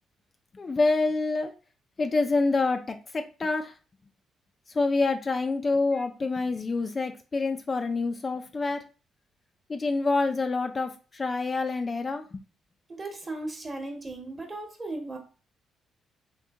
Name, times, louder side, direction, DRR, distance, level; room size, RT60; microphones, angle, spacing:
voice 1, 0.5-1.5 2.0-3.7 4.7-8.8 9.7-12.4, left 3 dB, 30° left, 6 dB, 0.3 m, -27 dB
voice 2, 12.9-15.2, right 2 dB, 25° right, 2 dB, 1.0 m, -37 dB
3.7 x 2.6 x 2.4 m, 0.34 s
cardioid pair, 90°, 0 cm